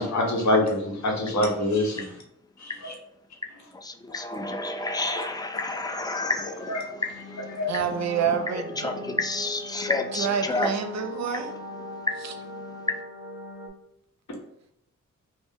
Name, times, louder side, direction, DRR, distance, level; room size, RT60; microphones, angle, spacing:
voice 1, 0.0-2.0 2.6-2.9 6.1-6.3 6.7-6.8 7.6-7.7, left 1 dB, 65° left, -1 dB, 1.0 m, -25 dB
voice 2, 3.7-7.5 8.8-10.7, left 3 dB, 15° left, 5 dB, 0.4 m, -30 dB
sound 1, 6.5-13.7, left 1 dB, 5° right, 0.9 m, -40 dB
voice 3, 7.7-9.2 10.1-11.5 12.2-12.3, right 7 dB, 60° right, 6 dB, 0.5 m, -28 dB
2.6 x 2.1 x 3.5 m, 0.76 s
cardioid pair, 55°, 31 cm